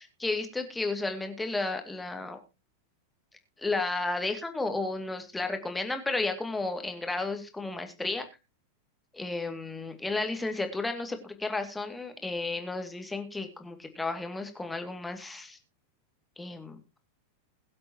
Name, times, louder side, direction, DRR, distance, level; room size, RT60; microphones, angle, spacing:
voice 1, 0.0-2.4 3.6-8.2 9.1-15.6 16.4-16.8, left 3 dB, 10° left, 6 dB, 2.3 m, -33 dB
21.5 x 7.8 x 2.9 m, 0.27 s
figure-of-eight pair, 90°, 0 cm